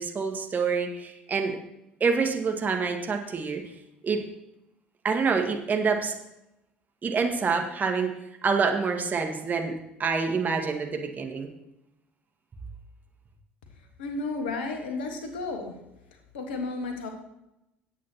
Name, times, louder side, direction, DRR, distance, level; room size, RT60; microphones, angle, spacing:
voice 1, 0.0-1.6 2.0-3.6 4.0-4.3 5.0-6.1 7.0-8.1 8.4-9.7 10.0-11.5, right 5 dB, 30° right, 3 dB, 1.7 m, -26 dB
voice 2, 14.0-15.8 16.3-17.1, left 3 dB, 70° left, 5 dB, 1.6 m, -32 dB
17.0 x 8.4 x 2.9 m, 0.88 s
figure-of-eight pair, 60°, 6 cm